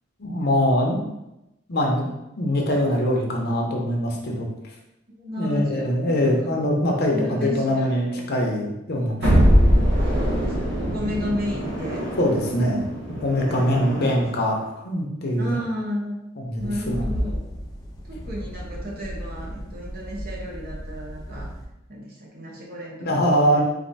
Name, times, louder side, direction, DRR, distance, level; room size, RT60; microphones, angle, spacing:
voice 1, 0.2-1.1 1.7-2.1 2.4-4.5 5.4-9.2 12.2-12.8 13.2-15.5 16.4-17.1 23.0-23.6, equal, 55° left, 0 dB, 0.9 m, -23 dB
voice 2, 5.2-5.9 6.2-6.5 7.1-8.2 9.0-9.6 10.0-12.1 13.5-14.2 15.4-16.2 16.6-17.5 18.0-21.5 21.9-23.6, equal, 50° right, -3 dB, 1.2 m, -33 dB
sound 1, 9.2-14.3, equal, 65° right, 1.4 m, -22 dB
sound 2, 16.6-21.7, equal, 20° left, 0.7 m, -34 dB
4.3 x 2.7 x 4.1 m, 0.91 s
head